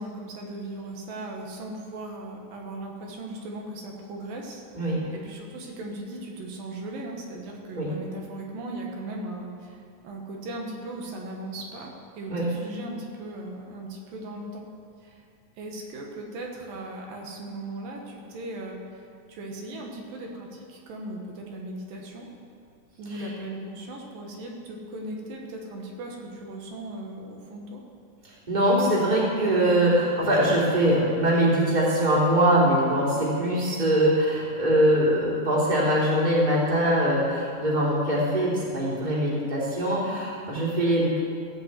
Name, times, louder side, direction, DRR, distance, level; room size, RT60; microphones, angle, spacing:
voice 1, 0.0-14.7 15.0-15.2 15.6-22.3 23.0-27.8, right 1 dB, 80° right, 0 dB, 3.0 m, -38 dB
voice 2, 28.2-41.2, right 1 dB, 15° right, -6 dB, 2.5 m, -22 dB
16.0 x 5.4 x 8.0 m, 2.3 s
omnidirectional pair, 4.0 m